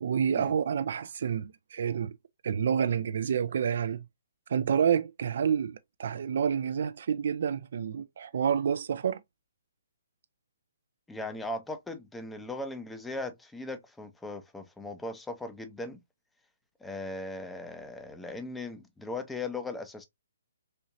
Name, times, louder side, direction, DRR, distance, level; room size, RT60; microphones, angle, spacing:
voice 1, 0.0-2.1 2.4-4.0 4.5-9.2, right 7 dB, 55° right, 0.4 m, -28 dB
voice 2, 11.1-16.0 16.8-20.1, left 2 dB, 5° left, 0.7 m, -38 dB
4.2 x 2.8 x 2.5 m
hypercardioid pair, 145°, 0 cm